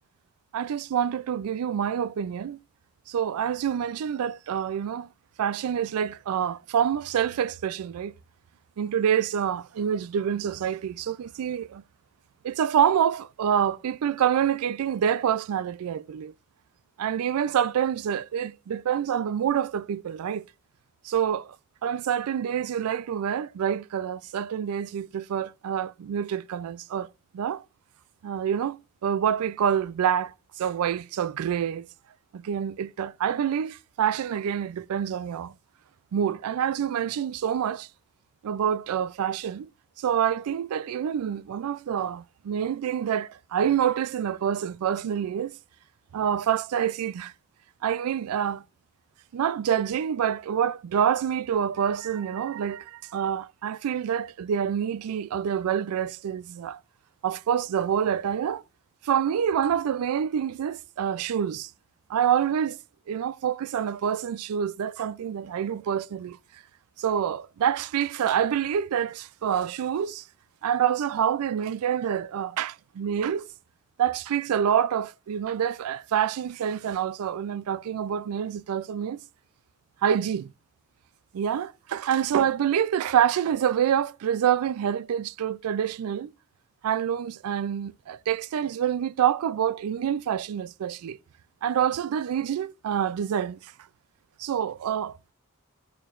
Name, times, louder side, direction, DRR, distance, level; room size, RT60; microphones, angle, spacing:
voice 1, 0.5-2.6 3.1-5.1 5.4-8.1 8.8-11.8 12.4-16.3 17.0-20.4 21.0-21.6 21.8-27.1 27.3-27.6 28.2-31.9 32.3-35.5 36.1-37.9 38.4-39.7 40.0-45.6 46.1-47.3 47.8-48.6 49.3-56.8 57.2-58.6 59.0-61.7 62.1-62.8 63.1-66.4 67.0-70.2 70.6-73.4 74.0-79.2 80.0-80.5 81.3-86.3 86.8-91.2 91.6-93.7 94.4-95.2, right 9 dB, 90° right, 0.3 m, -27 dB
11.0 x 4.4 x 2.4 m
head